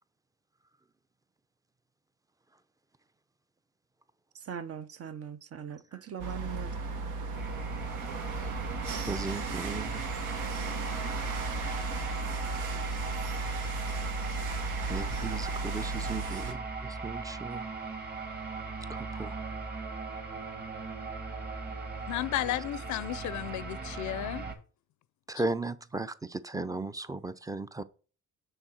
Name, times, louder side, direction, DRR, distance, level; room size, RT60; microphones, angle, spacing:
voice 1, 4.5-6.8, right 8 dB, 50° right, 0.8 m, -40 dB
sound 1, 6.2-16.5, right 3 dB, 80° right, 1.2 m, -35 dB
sound 2, 7.3-24.5, right 4 dB, 30° right, 1.9 m, -39 dB
voice 2, 9.0-10.1 14.9-17.7 18.9-19.4 22.4-22.5 25.3-27.8, right 3 dB, 10° right, 0.5 m, -36 dB
voice 3, 22.1-24.5, left 14 dB, 75° left, 0.6 m, -33 dB
6.4 x 3.9 x 6.2 m
cardioid pair, 90°, 30 cm